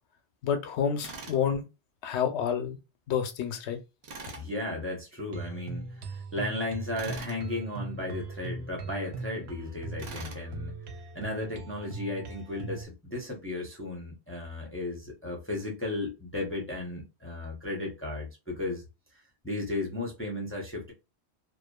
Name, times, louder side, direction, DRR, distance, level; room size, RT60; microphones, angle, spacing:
voice 1, 0.4-1.6 2.0-2.8 3.1-3.8, left 7 dB, 80° left, 0.9 m, -29 dB
Tools, 1.0-1.4 4.0-4.5 7.0-7.4 10.0-10.4, right 3 dB, 50° right, 0.6 m, -42 dB
voice 2, 4.3-10.8 11.1-18.8 19.1-20.9, left 2 dB, 15° left, 0.5 m, -35 dB
sound 1, 5.3-12.8, right 4 dB, 75° right, 0.8 m, -40 dB
2.5 x 2.3 x 2.2 m
omnidirectional pair, 1.1 m